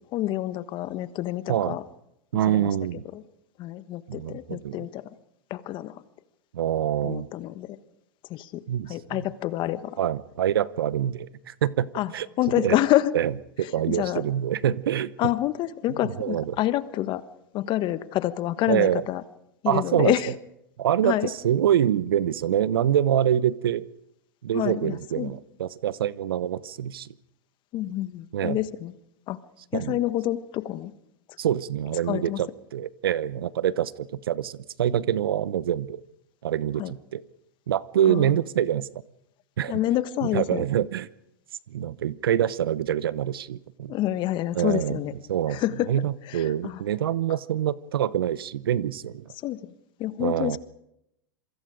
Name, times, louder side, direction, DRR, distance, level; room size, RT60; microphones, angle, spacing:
voice 1, 0.1-1.8 2.5-2.7 3.1-3.2 3.6-5.0 5.5-6.0 7.0-7.8 8.3-10.0 11.9-12.1 12.4-13.1 13.9-14.3 15.2-17.2 17.5-19.2 19.6-20.3 21.0-21.3 24.5-25.3 27.7-28.9 29.3-29.4 29.7-30.9 32.1-32.4 36.8-36.9 38.1-38.4 39.7-40.7 43.9-45.1 45.5-45.9 46.3-46.8 49.4-49.7 50.0-50.6, left 14 dB, 40° left, 13 dB, 1.3 m, -27 dB
voice 2, 2.3-3.0 4.1-4.9 6.5-7.3 8.7-9.2 10.0-12.3 12.6-12.8 13.1-13.3 13.6-15.1 16.0-16.6 18.7-19.0 19.7-20.1 20.8-23.8 24.4-27.1 28.3-28.6 29.7-30.0 31.4-36.0 36.4-37.2 37.7-38.9 39.6-39.8 40.3-41.1 41.7-43.9 44.5-45.0 45.3-49.2 50.2-50.6, right 10 dB, 75° right, 19 dB, 0.9 m, -25 dB
27.0 x 24.0 x 5.1 m, 0.83 s
hypercardioid pair, 100°, 12 cm